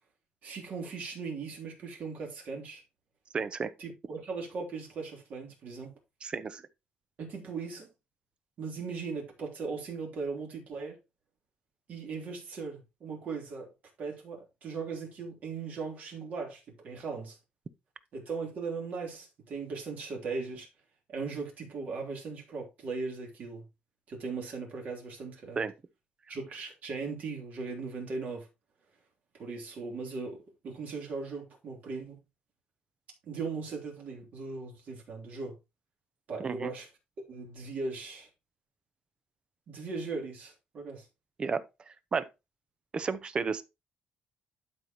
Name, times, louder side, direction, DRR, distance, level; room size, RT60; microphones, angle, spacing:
voice 1, 0.4-2.8 3.8-5.9 7.2-7.9 8.6-11.0 11.9-13.7 14.0-17.4 18.1-20.7 21.1-23.6 24.1-25.7 26.3-28.5 29.3-32.2 33.2-35.6 36.3-36.9 37.3-38.3 39.7-41.1, right 4 dB, 50° right, 3.4 m, -38 dB
voice 2, 3.3-3.7 6.2-6.6 25.6-25.7 36.4-36.7 41.4-41.6 42.1-42.3 42.9-43.6, right 5 dB, 30° right, 0.7 m, -32 dB
12.0 x 5.1 x 3.0 m
cardioid pair, 145°, 3 cm